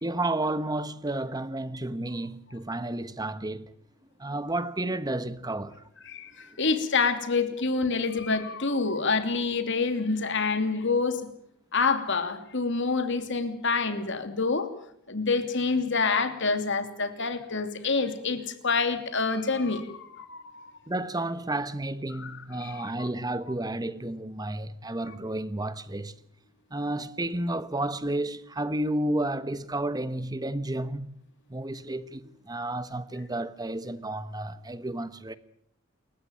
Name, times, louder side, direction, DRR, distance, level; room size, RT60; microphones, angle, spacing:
voice 1, 0.0-3.7 4.2-5.8 20.9-26.2 26.7-31.2 31.5-35.4, right 1 dB, 20° right, 1.1 m, -31 dB
voice 2, 6.1-11.3 11.7-14.7 15.1-20.7 22.2-22.9, left 4 dB, 60° left, 2.8 m, -27 dB
28.0 x 15.0 x 9.1 m
head